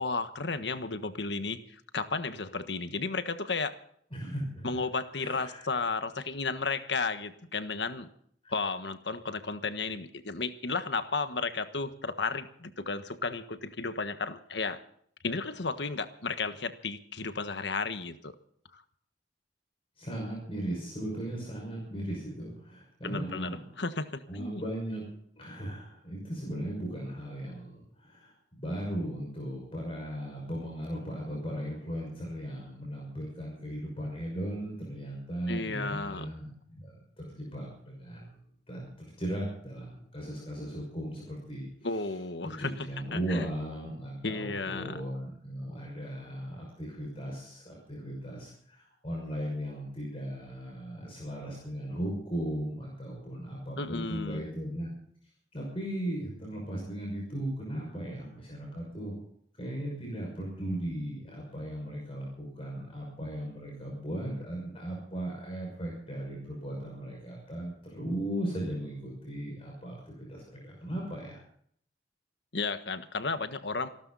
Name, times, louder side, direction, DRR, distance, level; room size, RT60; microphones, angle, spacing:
voice 1, 0.0-3.7 4.6-8.1 8.5-14.8 15.2-18.3 18.7-18.8 23.0-24.6 35.5-36.3 41.8-43.5 44.2-45.0 53.8-54.4 72.5-73.9, left 4 dB, 85° left, 10 dB, 1.4 m, -33 dB
voice 2, 4.1-4.8 5.1-5.7 8.4-8.5 20.0-23.6 24.3-25.0 25.3-38.4 38.7-41.7 42.4-54.9 55.5-59.2 59.6-71.4, right 1 dB, 35° left, -2 dB, 6.0 m, -37 dB
27.5 x 12.5 x 4.1 m, 0.64 s
head